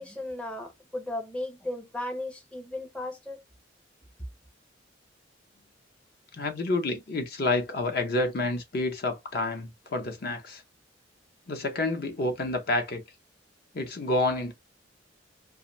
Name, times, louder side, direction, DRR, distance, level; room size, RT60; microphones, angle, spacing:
voice 1, 0.0-3.4, left 1 dB, 5° left, 0.5 m, -36 dB
voice 2, 6.3-10.6 11.5-13.0 13.7-14.5, left 2 dB, 55° left, 0.7 m, -29 dB
2.5 x 2.0 x 3.0 m
head